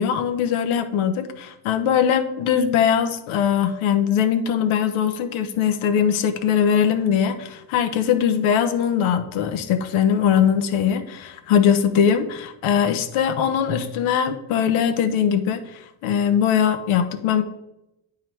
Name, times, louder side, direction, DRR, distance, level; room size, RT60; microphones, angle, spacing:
voice 1, 0.0-15.6 16.0-17.4, left 8 dB, 75° left, 9 dB, 1.0 m, -21 dB
9.2 x 3.7 x 4.5 m, 0.89 s
supercardioid pair, 75°, 49 cm